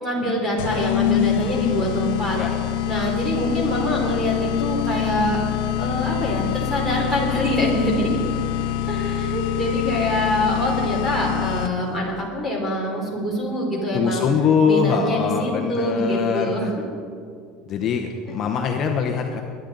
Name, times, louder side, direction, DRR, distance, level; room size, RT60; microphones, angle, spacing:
voice 1, 0.0-2.4 2.8-5.4 5.8-8.2 8.9-14.2 14.6-16.7 18.3-18.4, equal, 10° right, -2 dB, 3.2 m, -24 dB
sound 1, 0.6-12.0, left 11 dB, 70° left, 0.7 m, -25 dB
voice 2, 13.9-16.5 17.7-19.4, left 6 dB, 30° left, 2 dB, 0.9 m, -22 dB
21.5 x 10.0 x 4.0 m, 2.3 s
cardioid pair, 165°, 0 cm